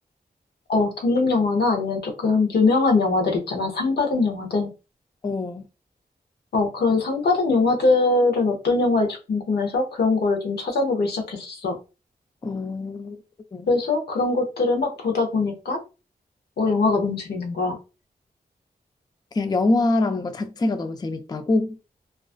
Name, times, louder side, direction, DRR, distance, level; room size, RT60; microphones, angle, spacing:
voice 1, 0.7-4.7 6.5-11.8 13.7-15.8 16.6-17.8, left 3 dB, 80° left, 0.7 m, -22 dB
voice 2, 5.2-5.6 12.4-13.2 13.5-13.7 19.3-21.8, left 2 dB, 25° left, 0.4 m, -24 dB
2.3 x 2.3 x 2.4 m
cardioid pair, 50°, 17 cm